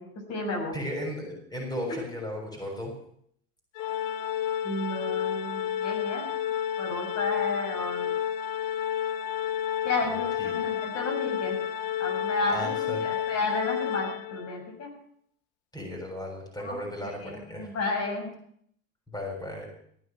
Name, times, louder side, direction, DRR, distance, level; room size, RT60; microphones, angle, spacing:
voice 1, 0.0-0.8 4.6-6.4 6.8-8.1 9.8-11.6 12.0-14.9 16.6-16.8 17.2-18.3, left 2 dB, 50° left, 3 dB, 6.4 m, -32 dB
voice 2, 0.7-2.9 10.1-10.5 12.5-13.0 15.7-17.7 19.1-19.7, left 1 dB, 10° left, 1 dB, 6.6 m, -35 dB
Organ, 3.8-14.6, left 10 dB, 75° left, 1.2 m, -31 dB
16.0 x 9.4 x 8.8 m, 0.67 s
supercardioid pair, 105°, 34 cm